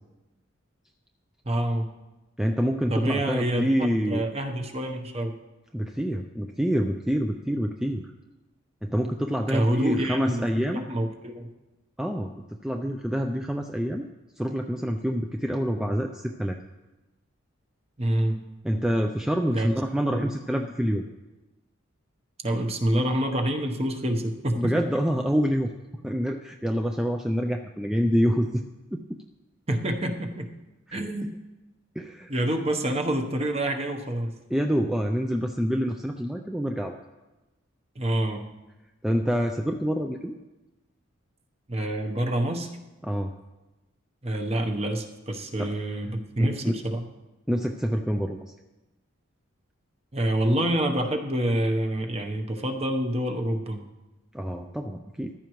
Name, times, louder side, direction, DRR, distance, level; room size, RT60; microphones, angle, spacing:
voice 1, 1.4-1.9 2.9-3.8 4.1-5.3 9.5-11.5 18.0-18.4 19.5-19.7 20.1-20.3 22.4-24.6 29.7-30.5 30.9-31.3 32.3-34.3 38.0-38.4 41.7-42.7 44.2-47.0 50.1-53.8, right 1 dB, 30° right, 4 dB, 0.9 m, -27 dB
voice 2, 2.4-4.2 5.7-8.1 8.8-10.8 12.0-12.3 12.6-14.1 14.4-16.6 18.6-21.0 24.6-25.7 26.0-28.6 28.9-29.0 30.9-31.4 32.0-32.3 34.5-36.9 39.0-40.4 43.0-43.3 45.6-45.7 46.4-46.8 47.5-48.4 54.3-55.3, equal, 5° right, 3 dB, 0.4 m, -27 dB
14.0 x 12.5 x 3.1 m, 1.1 s
head